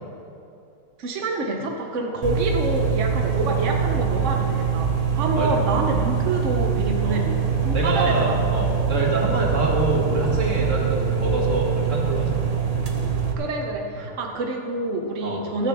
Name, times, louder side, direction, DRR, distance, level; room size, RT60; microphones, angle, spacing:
voice 1, 1.0-8.8 13.3-15.7, right 2 dB, 60° right, 2 dB, 0.8 m, -27 dB
sound 1, 2.2-13.3, right 6 dB, 75° right, 0.3 m, -23 dB
voice 2, 7.7-12.4 14.0-14.1 15.2-15.4, right 2 dB, 35° right, -2 dB, 2.1 m, -25 dB
13.5 x 6.7 x 7.7 m, 2.7 s
omnidirectional pair, 2.4 m